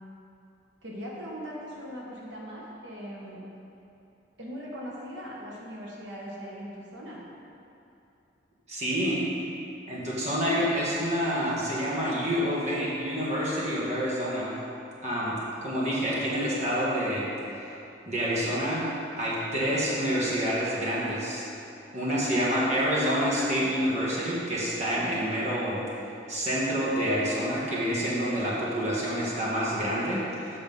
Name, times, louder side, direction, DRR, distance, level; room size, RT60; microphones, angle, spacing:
voice 1, 0.8-3.4 4.4-7.2, equal, 80° right, -4 dB, 1.4 m, -40 dB
voice 2, 8.7-9.2 9.9-14.5 15.0-17.7 18.1-18.9 19.2-21.4 21.9-25.8 26.3-30.5, equal, 40° right, -6 dB, 1.6 m, -28 dB
7.8 x 5.8 x 5.4 m, 2.8 s
head